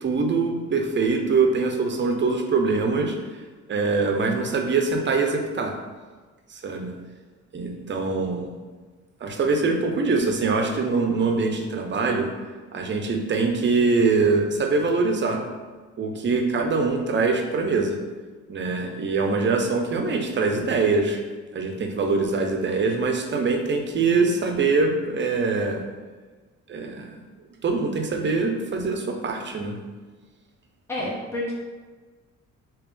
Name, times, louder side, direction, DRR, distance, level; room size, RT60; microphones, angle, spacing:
voice 1, 0.0-3.2 3.7-5.7 6.5-6.9 7.5-8.5 9.2-12.3 12.7-15.4 16.0-18.0 18.5-21.2 21.5-25.8 26.7-27.2 27.6-29.8 31.0-31.1, right 4 dB, 40° right, 3 dB, 0.6 m, -23 dB
voice 2, 30.9-31.5, left 1 dB, 10° left, -5 dB, 0.8 m, -29 dB
3.4 x 2.9 x 3.4 m, 1.4 s
cardioid pair, 90°, 30 cm